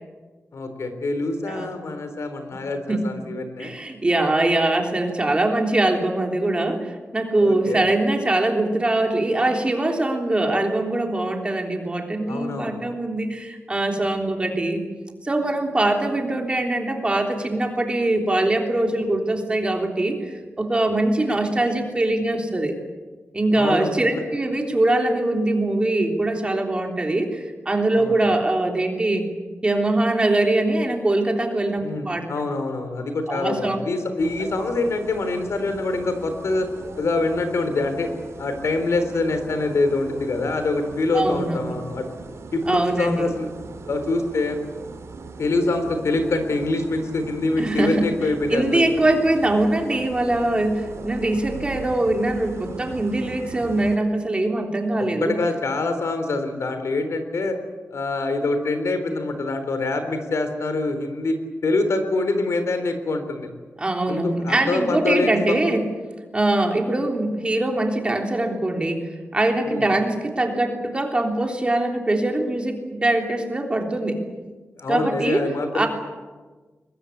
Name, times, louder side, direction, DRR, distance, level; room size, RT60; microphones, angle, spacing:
voice 1, 0.5-3.7 7.4-7.8 12.3-12.8 23.5-24.2 28.0-28.1 31.8-36.7 37.0-38.1 38.4-42.1 42.5-43.5 43.9-44.6 45.4-48.8 55.0-57.6 57.9-61.3 61.6-63.5 64.1-65.6 69.7-69.9 74.8-75.9, left 2 dB, 80° left, 8 dB, 3.8 m, -25 dB
voice 2, 1.4-1.7 2.5-2.6 2.9-3.1 3.6-14.8 15.2-22.7 23.3-29.3 29.6-32.3 33.3-33.8 41.1-41.8 42.7-43.3 47.6-48.0 48.5-55.4 63.8-65.8 66.3-74.2 74.9-75.5 75.7-75.9, right 2 dB, 20° right, 2 dB, 3.4 m, -22 dB
sound 1, 34.2-54.0, right 4 dB, 90° right, 2.7 m, -39 dB
22.0 x 21.5 x 8.6 m, 1.3 s
wide cardioid pair, 160°, 5 cm